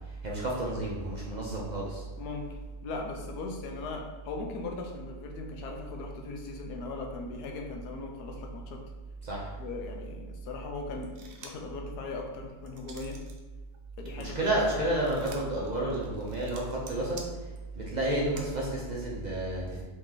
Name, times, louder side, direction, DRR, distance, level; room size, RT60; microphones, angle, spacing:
voice 1, 0.2-2.0 9.2-9.5 14.2-17.2 17.7-19.8, right 1 dB, 40° right, -4 dB, 0.6 m, -31 dB
voice 2, 2.2-8.8 9.6-11.1 11.4-13.2 14.0-14.6, left 3 dB, 85° left, 2 dB, 1.3 m, -39 dB
sound 1, 11.0-11.7 12.2-13.4 13.7-18.5, right 5 dB, 80° right, 1.2 m, -50 dB
4.0 x 3.0 x 3.8 m, 1.3 s
omnidirectional pair, 1.6 m